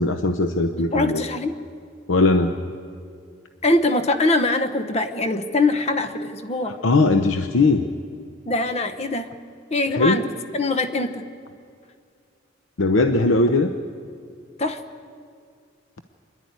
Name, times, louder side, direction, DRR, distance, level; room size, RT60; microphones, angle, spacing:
voice 1, 0.0-1.2 2.1-2.6 6.6-7.9 9.9-10.2 12.8-13.7, left 2 dB, 90° left, 7 dB, 0.8 m, -19 dB
voice 2, 0.9-1.5 3.6-6.8 8.5-9.3 9.7-10.2 10.5-11.3 14.6-14.8, left 2 dB, 35° left, 9 dB, 0.8 m, -22 dB
25.0 x 11.0 x 9.5 m, 2.3 s
head